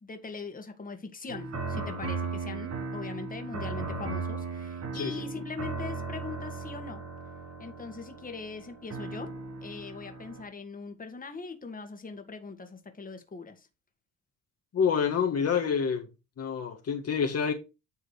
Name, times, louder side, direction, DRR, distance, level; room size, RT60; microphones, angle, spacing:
voice 1, 0.0-7.0 7.6-9.3 9.6-13.7, left 4 dB, 30° left, 1.8 m, -41 dB
sound 1, 1.3-10.4, right 4 dB, 55° right, 2.2 m, -37 dB
voice 2, 4.9-5.2 14.7-16.1 16.4-17.5, left 6 dB, 55° left, 1.6 m, -27 dB
9.6 x 3.7 x 4.9 m
cardioid pair, 90°, 30 cm